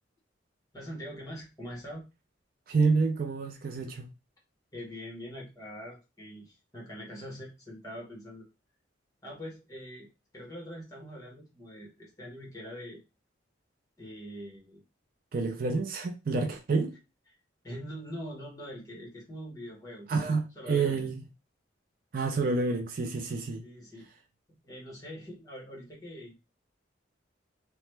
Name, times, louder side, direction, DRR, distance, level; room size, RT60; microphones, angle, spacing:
voice 1, 0.7-2.0 4.7-8.4 9.2-10.1 10.3-13.0 14.0-14.8 17.6-20.1 20.5-21.1 23.6-24.1 24.5-26.4, equal, 20° left, 1.2 m, -43 dB
voice 2, 2.7-4.1 15.3-16.9 20.1-21.2 22.1-23.6, right 4 dB, 50° right, 0.4 m, -28 dB
2.9 x 2.2 x 3.1 m
head